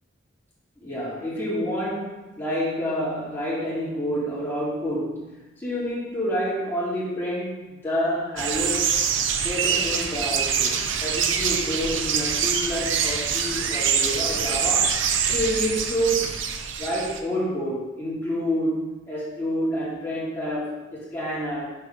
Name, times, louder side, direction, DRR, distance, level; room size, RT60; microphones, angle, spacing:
voice 1, 0.8-9.0 9.4-15.0 15.3-16.3 16.8-21.7, equal, 10° left, -9 dB, 2.5 m, -28 dB
sound 1, 8.4-17.2, right 7 dB, 75° right, 0.6 m, -25 dB
6.1 x 4.7 x 5.5 m, 1.1 s
head